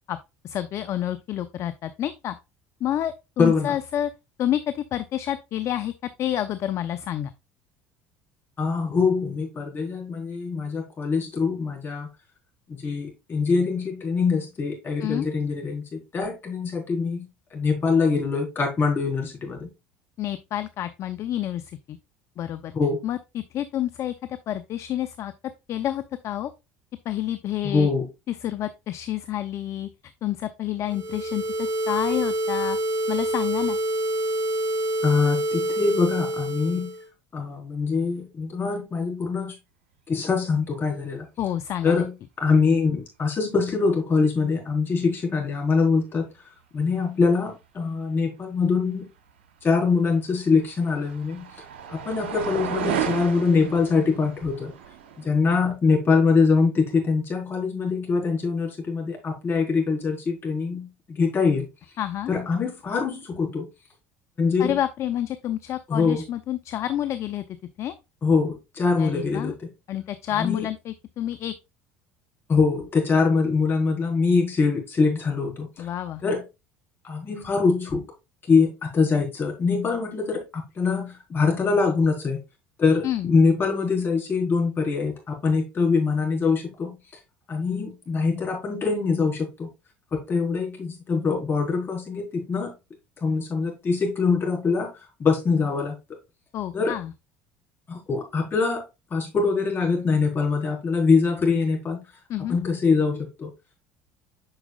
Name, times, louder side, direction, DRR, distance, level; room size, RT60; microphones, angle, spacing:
voice 1, 0.4-2.4 2.8-4.1 4.4-5.9 6.2-7.3 15.0-15.3 20.2-22.0 22.4-22.7 23.0-24.1 24.5-25.3 25.7-26.5 27.0-27.9 28.3-29.9 30.2-32.8 33.1-33.8 41.4-42.0 62.0-62.3 64.6-67.4 67.8-67.9 69.0-69.5 69.9-71.5 75.8-76.2 83.0-83.3 96.5-97.1 102.3-102.6, left 11 dB, 50° left, 0.6 m, -29 dB
voice 2, 3.4-3.8 8.6-12.1 12.7-19.7 22.7-23.0 27.6-28.1 35.0-36.9 37.3-39.5 40.1-41.3 41.8-46.2 46.7-49.1 49.6-51.5 51.9-54.7 55.2-61.7 62.3-63.7 64.4-64.8 65.9-66.2 68.2-69.5 70.4-70.7 72.5-75.9 76.2-76.4 77.0-78.0 78.5-82.4 82.8-87.0 87.5-89.7 90.1-92.7 93.2-95.9 96.7-97.0 97.9-98.8 99.1-102.0 102.5-103.5, left 4 dB, 35° left, 4.4 m, -23 dB
sound 1, 30.9-37.0, right 1 dB, 40° right, 2.9 m, -27 dB
sound 2, 50.0-55.3, right 7 dB, 85° right, 0.9 m, -33 dB
8.8 x 6.1 x 2.4 m
hypercardioid pair, 70°, 6 cm